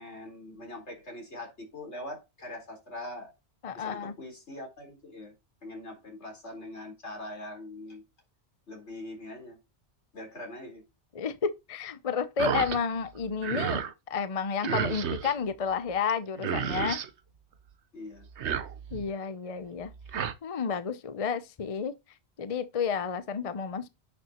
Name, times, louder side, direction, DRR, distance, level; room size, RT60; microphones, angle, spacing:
voice 1, 0.0-3.3 3.7-5.3 5.6-8.0 8.7-9.6 10.1-10.8 17.9-18.3, left 1 dB, 85° left, 4.4 m, -42 dB
voice 2, 3.6-4.1 11.1-13.8 14.1-17.0 18.9-19.9 20.4-21.9 22.4-23.9, left 6 dB, 40° left, 0.7 m, -31 dB
sound 1, 12.4-12.8 13.2-13.9 14.6-15.3 16.1-16.2 16.4-17.1 18.2-19.1 19.8-20.3, right 8 dB, 85° right, 1.1 m, -31 dB
9.8 x 6.8 x 3.0 m
omnidirectional pair, 1.1 m